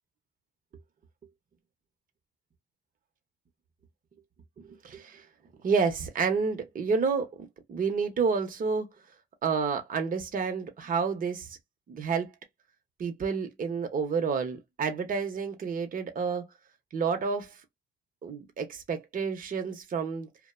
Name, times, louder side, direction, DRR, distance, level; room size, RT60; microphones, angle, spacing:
voice 1, 4.6-5.2 5.6-7.3 7.7-8.9 9.4-11.5 11.9-12.3 13.0-16.4 16.9-17.6 18.2-20.3, right 5 dB, 45° right, 0.8 m, -29 dB
2.5 x 2.1 x 2.4 m
cardioid pair, 90°, 20 cm